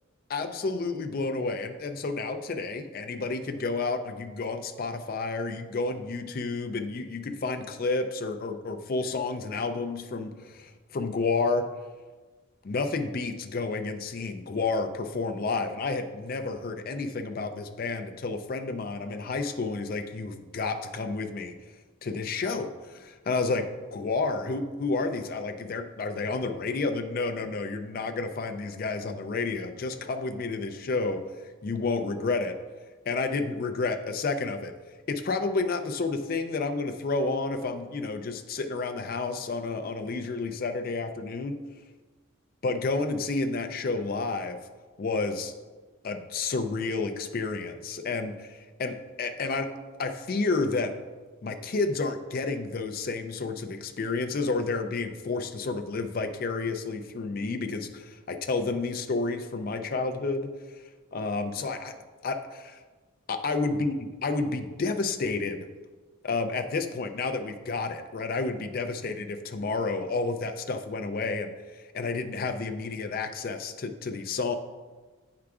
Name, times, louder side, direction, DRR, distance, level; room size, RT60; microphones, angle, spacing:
voice 1, 0.3-11.7 12.6-21.5 22.0-23.7 23.9-31.2 31.6-32.5 33.1-34.7 35.1-41.6 42.6-44.6 45.0-45.5 46.0-49.7 50.0-50.9 51.4-60.8 61.1-61.9 62.2-62.8 63.3-65.7 66.2-74.6, left 3 dB, 45° left, 7 dB, 0.4 m, -30 dB
8.4 x 4.7 x 2.4 m, 1.3 s
head